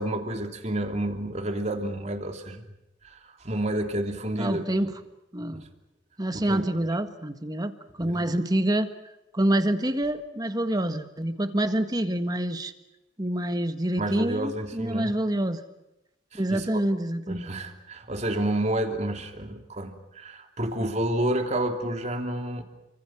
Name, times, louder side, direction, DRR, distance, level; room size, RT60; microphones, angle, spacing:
voice 1, 0.0-2.6 3.0-4.7 6.3-6.6 8.0-8.2 14.0-15.1 16.3-16.6 17.3-22.6, right 1 dB, 35° right, 5 dB, 2.9 m, -30 dB
voice 2, 4.4-4.9 5.3-5.6 6.2-7.7 8.0-8.9 9.3-12.7 13.2-15.6 16.3-17.5, right 1 dB, 20° right, 9 dB, 1.6 m, -27 dB
29.5 x 25.5 x 6.1 m, 0.90 s
head